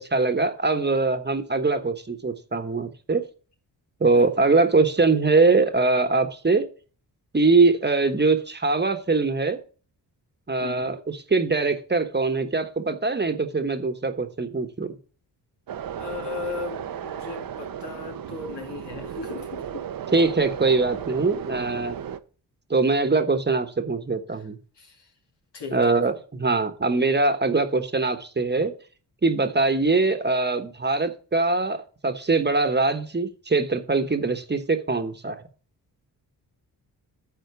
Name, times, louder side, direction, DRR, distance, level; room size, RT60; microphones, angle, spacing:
voice 1, 0.0-3.2 4.0-6.7 7.3-9.6 10.5-15.0 20.1-22.0 22.7-24.6 25.7-28.7 29.2-35.4, right 3 dB, 25° right, 1.2 m, -22 dB
voice 2, 10.6-10.9 16.0-19.8 24.8-25.0 25.5-25.9, left 5 dB, 80° left, 2.6 m, -36 dB
sound 1, 15.7-22.2, right 9 dB, 55° right, 0.7 m, -35 dB
9.5 x 4.4 x 6.9 m
cardioid pair, 70°, 41 cm